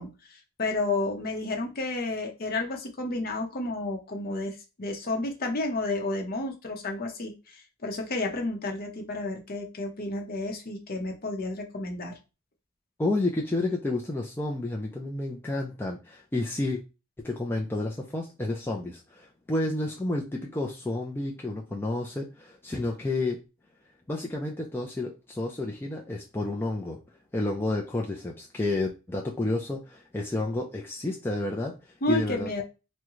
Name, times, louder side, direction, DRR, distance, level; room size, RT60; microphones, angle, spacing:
voice 1, 0.0-12.2 32.0-32.6, left 2 dB, 45° left, 3 dB, 0.7 m, -31 dB
voice 2, 13.0-16.8 17.2-23.4 24.1-27.0 27.3-32.6, left 2 dB, 10° left, -1 dB, 0.3 m, -30 dB
3.6 x 2.1 x 3.0 m, 0.28 s
head